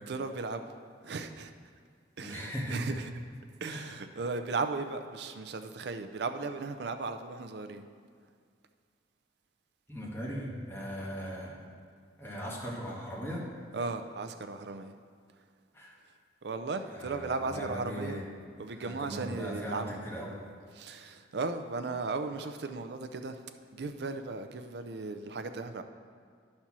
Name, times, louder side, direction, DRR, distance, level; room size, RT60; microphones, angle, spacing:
voice 1, 0.1-0.8 1.0-1.5 2.2-3.1 3.6-7.8 13.7-14.9 16.4-18.2 18.6-19.9 20.7-23.4 23.7-25.8, right 3 dB, 60° right, 8 dB, 0.5 m, -36 dB
voice 2, 2.2-3.0 3.7-3.9 9.9-11.6 12.2-13.4 15.7-15.9 16.9-18.2 18.8-20.3 20.9-21.0, equal, 10° left, -5 dB, 1.5 m, -38 dB
10.5 x 4.3 x 6.0 m, 2.1 s
head